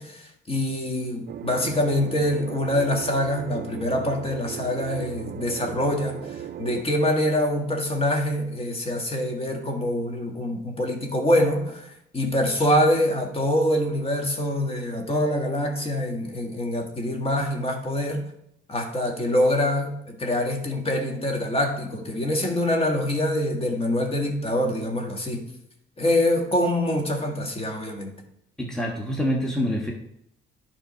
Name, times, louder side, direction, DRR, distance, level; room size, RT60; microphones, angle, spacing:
voice 1, 0.0-18.2 18.7-25.5 26.0-28.2, left 1 dB, 30° left, 2 dB, 1.7 m, -25 dB
sound 1, 1.3-6.8, right 10 dB, 50° right, 0.5 m, -36 dB
voice 2, 28.6-29.9, equal, 5° left, -1 dB, 1.3 m, -26 dB
10.5 x 3.7 x 5.7 m, 0.78 s
cardioid pair, 90°, 20 cm